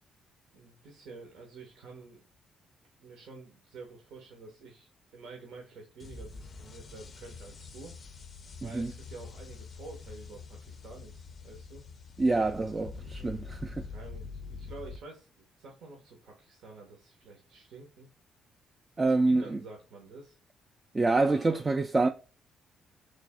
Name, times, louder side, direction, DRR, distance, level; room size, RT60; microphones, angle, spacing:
voice 1, 0.5-2.3 3.0-8.0 8.6-11.8 12.7-12.9 13.2-18.1 19.0-20.4 21.3-21.8, right 3 dB, 80° right, 0.9 m, -49 dB
sound 1, 6.0-15.0, left 4 dB, 45° left, 0.4 m, -45 dB
voice 2, 8.6-8.9 12.2-13.7 19.0-19.6 20.9-22.1, right 3 dB, 25° right, 0.3 m, -26 dB
3.2 x 2.5 x 3.5 m
cardioid pair, 90°, 0 cm